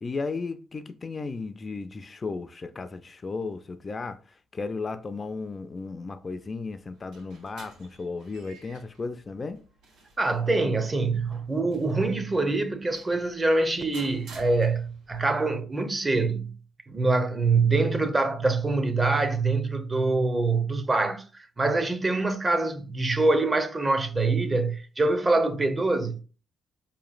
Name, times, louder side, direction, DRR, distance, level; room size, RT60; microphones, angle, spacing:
voice 1, 0.0-9.6, left 4 dB, 35° left, 0.4 m, -35 dB
sound 1, 6.8-15.2, right 2 dB, 90° right, 1.3 m, -52 dB
voice 2, 10.2-16.5 16.9-21.2 21.6-26.2, right 3 dB, 25° right, 0.6 m, -24 dB
4.7 x 2.9 x 2.4 m
cardioid pair, 90°, 0 cm